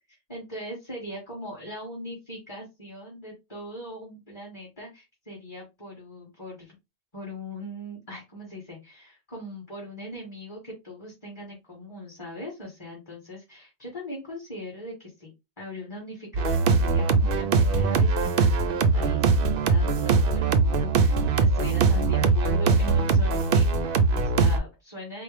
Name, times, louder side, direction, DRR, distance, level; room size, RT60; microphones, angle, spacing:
voice 1, 0.1-6.8 7.1-15.3 15.6-25.2, left 1 dB, 25° left, -3 dB, 1.5 m, -40 dB
sound 1, 16.3-24.6, right 4 dB, 60° right, 0.7 m, -21 dB
4.4 x 2.1 x 3.4 m, 0.23 s
omnidirectional pair, 1.2 m